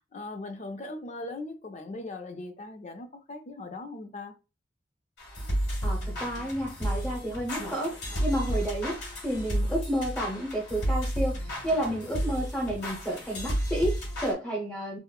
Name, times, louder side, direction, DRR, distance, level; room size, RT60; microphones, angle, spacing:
voice 1, 0.1-4.3, left 2 dB, 40° left, 0.5 m, -39 dB
sound 1, 5.2-14.3, equal, 85° left, 1.6 m, -32 dB
voice 2, 5.8-7.9 8.2-15.0, right 1 dB, 5° left, 0.8 m, -31 dB
3.7 x 2.0 x 2.3 m
head